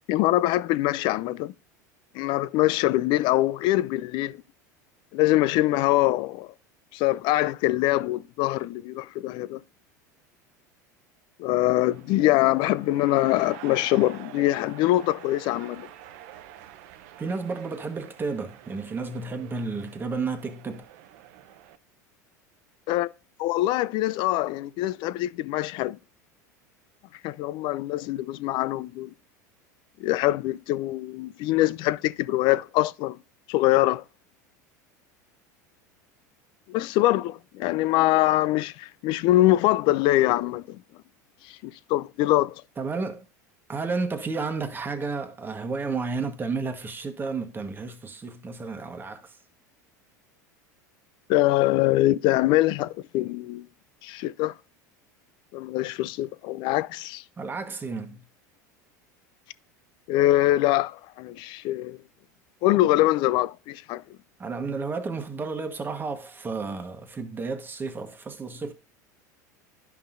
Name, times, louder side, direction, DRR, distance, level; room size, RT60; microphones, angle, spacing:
voice 1, 0.1-1.5 2.1-4.4 5.1-6.5 6.9-9.6 11.4-15.9 22.9-23.1 23.4-26.0 27.2-29.1 30.0-33.2 33.5-34.0 36.7-40.8 41.5-42.5 51.3-53.7 54.0-54.5 55.5-57.2 60.1-62.0 62.6-64.0, left 16 dB, 55° left, 0.4 m, -23 dB
sound 1, 11.8-21.8, right 12 dB, 65° right, 0.6 m, -47 dB
voice 2, 17.2-20.8 42.8-43.3 43.7-49.4 57.4-58.2 64.4-68.7, right 4 dB, 20° right, 1.3 m, -32 dB
10.5 x 5.5 x 2.5 m
hypercardioid pair, 95°, 10 cm